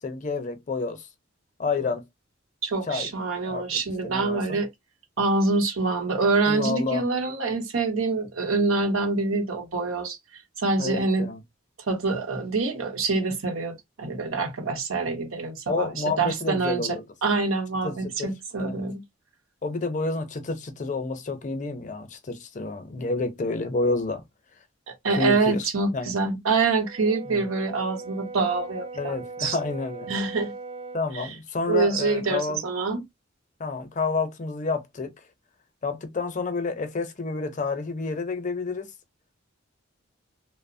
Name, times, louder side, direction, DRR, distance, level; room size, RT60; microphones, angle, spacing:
voice 1, 0.0-1.1 1.6-2.0 2.8-3.1 3.4-4.6 6.5-7.0 10.8-11.4 15.7-17.0 17.8-18.3 18.6-18.8 19.6-24.2 25.1-26.1 27.3-27.4 28.9-30.1 30.9-32.6 33.6-35.1 35.8-38.9, left 3 dB, 35° left, 0.5 m, -29 dB
voice 2, 2.6-4.7 5.2-10.2 10.6-11.3 11.9-15.9 16.2-16.8 17.2-19.0 25.0-29.6 30.1-30.5 31.1-31.3 31.7-33.0, right 3 dB, 90° right, 0.8 m, -25 dB
Brass instrument, 26.8-31.1, right 3 dB, 30° right, 0.3 m, -39 dB
2.9 x 2.0 x 2.5 m
head